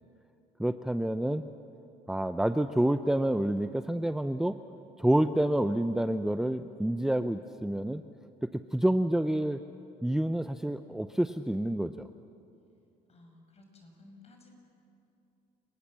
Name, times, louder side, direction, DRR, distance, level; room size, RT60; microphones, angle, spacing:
voice 1, 0.6-1.5 2.1-4.6 5.0-8.0 8.4-9.6 10.0-12.1, right 1 dB, 5° right, 9 dB, 0.6 m, -28 dB
voice 2, 13.1-14.5, left 2 dB, 40° left, 3 dB, 6.2 m, -55 dB
30.0 x 19.0 x 7.5 m, 2.6 s
cardioid pair, 110°, 17 cm